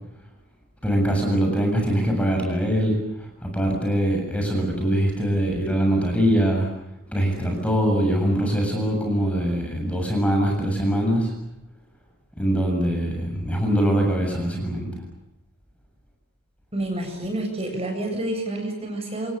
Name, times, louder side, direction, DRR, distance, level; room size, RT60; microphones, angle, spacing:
voice 1, 0.8-6.7 7.1-11.3 12.4-14.9, equal, 5° left, 1 dB, 7.3 m, -23 dB
voice 2, 16.7-19.3, right 1 dB, 30° right, 3 dB, 7.9 m, -28 dB
29.0 x 27.0 x 6.8 m, 0.86 s
head